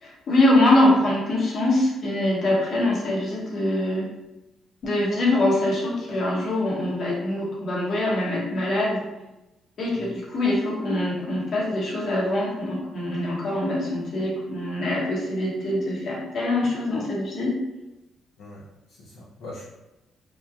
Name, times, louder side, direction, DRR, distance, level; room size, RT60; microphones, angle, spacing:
voice 1, 0.0-4.1 4.8-9.1 9.8-17.6, left 1 dB, 60° left, -4 dB, 0.8 m, -23 dB
voice 2, 18.4-19.6, left 1 dB, 85° left, -7 dB, 0.5 m, -42 dB
3.0 x 2.1 x 2.3 m, 0.99 s
cardioid pair, 90°, 0 cm